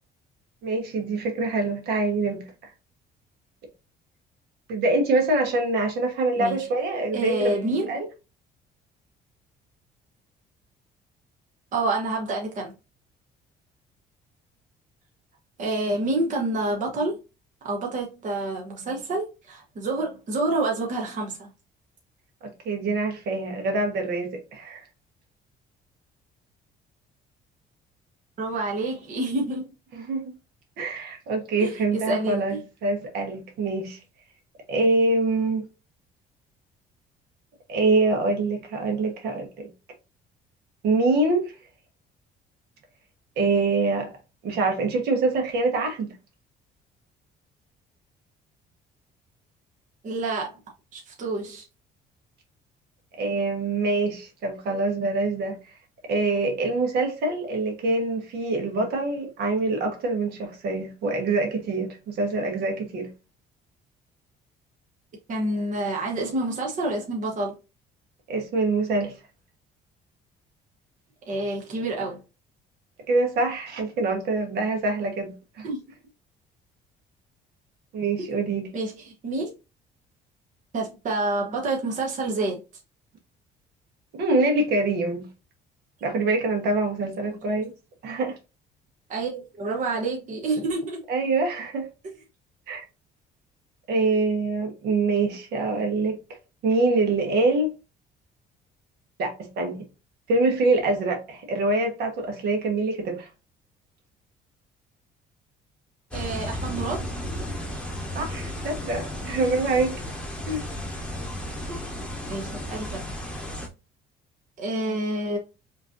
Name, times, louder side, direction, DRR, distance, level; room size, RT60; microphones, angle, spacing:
voice 1, 0.6-2.7 4.7-7.6 7.9-8.1 15.9-16.0 22.4-24.8 29.9-30.3 30.8-34.0 34.7-35.6 37.7-39.7 40.8-41.5 43.4-44.1 44.4-46.1 53.2-55.6 56.1-63.1 68.3-69.1 73.1-75.7 77.9-78.7 84.2-85.2 86.0-87.7 88.0-88.4 91.1-91.9 92.7-92.8 93.9-96.2 96.6-97.7 99.2-99.8 100.3-103.3 108.1-109.9 110.5-110.7, right 3 dB, 75° right, 1.5 m, -25 dB
voice 2, 6.4-6.7 7.1-8.0 11.7-12.7 15.6-17.2 17.6-21.5 28.4-29.7 31.6-32.4 50.0-50.6 50.9-51.6 65.3-67.5 71.3-72.2 75.6-75.9 78.2-78.3 78.7-79.5 80.7-82.6 87.4-87.5 89.1-91.0 106.1-107.2 111.7-111.8 112.3-113.1 114.6-115.4, right 2 dB, 50° right, 1.1 m, -28 dB
sound 1, 106.1-113.7, equal, 5° left, 1.1 m, -34 dB
5.0 x 3.2 x 2.6 m
cardioid pair, 110°, 17 cm